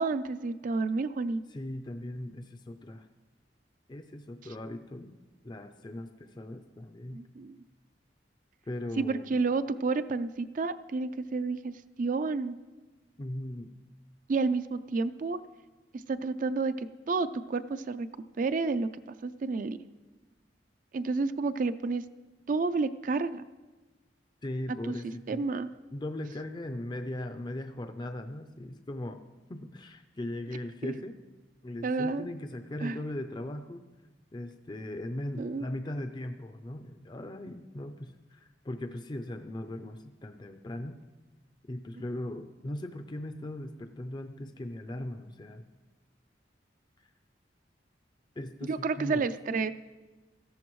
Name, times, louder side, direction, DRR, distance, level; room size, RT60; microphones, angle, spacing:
voice 1, 0.0-1.4 7.1-7.6 9.0-11.7 12.0-12.6 14.3-15.4 16.1-18.1 18.4-18.9 19.2-19.8 20.9-22.0 22.5-23.4 24.9-25.0 25.3-25.7 30.8-30.9 31.8-32.3 32.8-33.0 35.4-35.7 48.6-49.7, right 4 dB, 45° right, 12 dB, 0.4 m, -30 dB
voice 2, 1.5-3.1 3.9-5.1 5.4-7.2 8.7-9.3 13.2-13.7 24.4-25.5 25.9-29.2 29.5-31.2 31.6-33.8 34.3-41.0 41.7-45.6 48.4-49.3, left 1 dB, 25° left, 7 dB, 0.5 m, -39 dB
17.0 x 13.5 x 3.1 m, 1.2 s
head